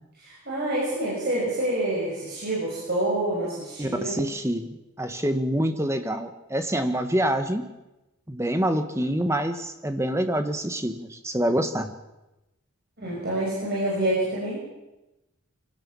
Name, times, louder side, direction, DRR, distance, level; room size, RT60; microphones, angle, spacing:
voice 1, 0.2-4.2 13.0-14.6, right 1 dB, 45° right, -5 dB, 6.6 m, -27 dB
voice 2, 3.8-7.7 8.3-11.9, right 1 dB, 10° right, 7 dB, 1.5 m, -26 dB
25.0 x 17.5 x 7.2 m, 0.99 s
head